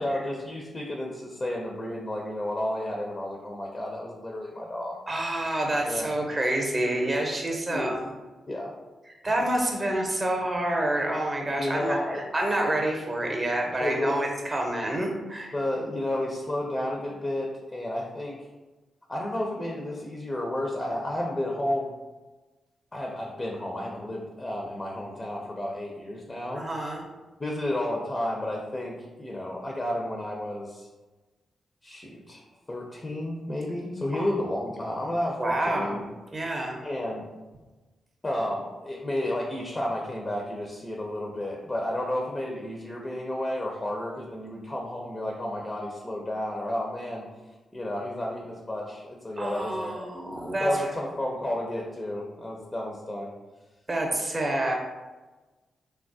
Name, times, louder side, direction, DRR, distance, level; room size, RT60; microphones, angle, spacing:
voice 1, 0.0-5.0 5.9-6.2 7.7-8.0 8.5-8.7 9.3-9.4 11.6-12.2 13.8-14.3 15.5-18.4 19.1-21.9 22.9-26.6 27.4-30.9 31.8-32.4 32.7-36.1 36.4-36.5 36.8-37.3 38.2-47.2 47.7-50.1 50.6-53.3, left 1 dB, 25° left, -1 dB, 0.5 m, -31 dB
voice 2, 5.1-8.0 9.2-15.5 26.5-27.0 34.1-34.3 35.4-36.0 36.3-36.8 49.4-50.8 53.9-54.8, right 1 dB, 30° right, 1 dB, 0.7 m, -28 dB
3.0 x 2.3 x 2.6 m, 1.2 s
supercardioid pair, 50°, 0 cm